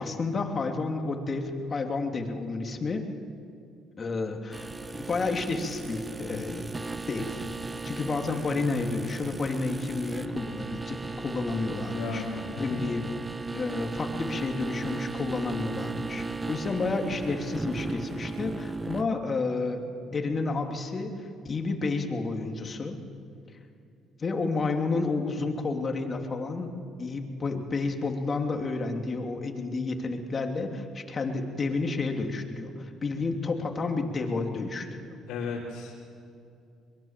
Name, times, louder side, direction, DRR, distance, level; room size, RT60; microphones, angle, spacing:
voice 1, 0.0-3.0 4.0-6.7 7.1-7.4 7.8-12.2 12.6-13.1 13.5-19.8 20.1-23.0 24.2-26.7 27.0-35.2, left 3 dB, 40° left, 3 dB, 2.8 m, -30 dB
sound 1, 4.5-19.0, right 3 dB, 20° right, 1.0 m, -36 dB
voice 2, 11.9-12.8 35.3-36.0, left 5 dB, 80° left, -5 dB, 3.5 m, -34 dB
23.0 x 21.5 x 7.5 m, 2.5 s
supercardioid pair, 75°, 0 cm